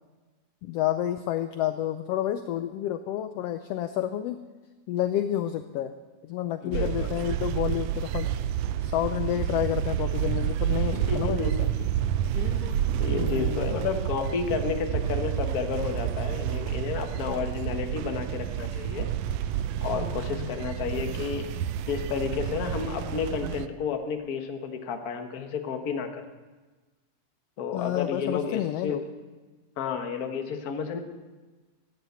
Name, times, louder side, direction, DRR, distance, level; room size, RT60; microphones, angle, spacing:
voice 1, 0.6-4.4 4.9-6.0 6.2-8.3 8.8-11.7 13.1-13.7 19.9-20.6 27.7-29.0, left 12 dB, 80° left, 10 dB, 1.4 m, -30 dB
voice 2, 6.6-7.2 10.8-11.5 11.8-11.9 12.3-19.1 19.8-21.5 21.9-26.2 27.6-29.1 29.8-31.0, left 6 dB, 50° left, 6 dB, 1.1 m, -31 dB
sound 1, 6.7-23.7, right 10 dB, 75° right, 1.5 m, -29 dB
15.5 x 9.9 x 8.0 m, 1.3 s
omnidirectional pair, 3.4 m